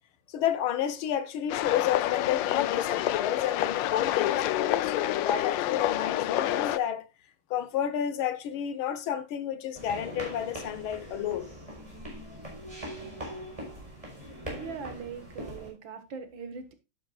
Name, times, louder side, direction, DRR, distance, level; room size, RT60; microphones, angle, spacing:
voice 1, 0.3-7.1 7.5-11.5, left 10 dB, 90° left, 1.8 m, -31 dB
sound 1, 1.5-6.8, left 13 dB, 75° left, 1.2 m, -28 dB
sound 2, 9.8-15.7, equal, 15° right, 4.5 m, -41 dB
voice 2, 14.6-16.7, right 5 dB, 70° right, 2.2 m, -41 dB
11.0 x 9.8 x 2.3 m
omnidirectional pair, 2.2 m